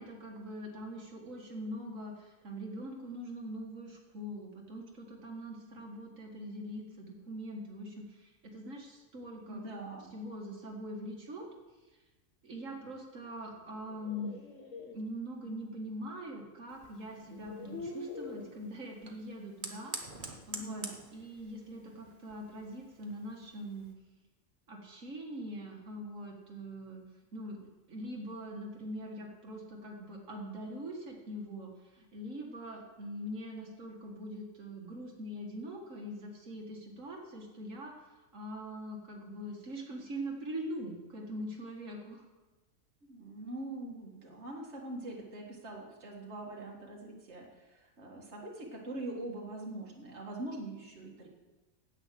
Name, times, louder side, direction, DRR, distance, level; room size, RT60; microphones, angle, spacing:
voice 1, 0.0-9.6 10.1-11.5 12.4-14.3 14.9-20.9 21.1-23.9 24.7-27.0 27.3-27.6 27.9-42.3, equal, 85° right, -1 dB, 2.2 m, -43 dB
voice 2, 9.5-10.1 20.6-21.0 43.1-51.3, right 2 dB, 60° right, -1 dB, 2.2 m, -43 dB
sound 1, 13.6-14.9 16.4-16.5 17.2-18.6, left 3 dB, 75° left, 1.7 m, -44 dB
Fire, 16.7-23.9, right 3 dB, 40° right, 1.4 m, -48 dB
10.0 x 9.0 x 7.6 m, 1.1 s
omnidirectional pair, 1.3 m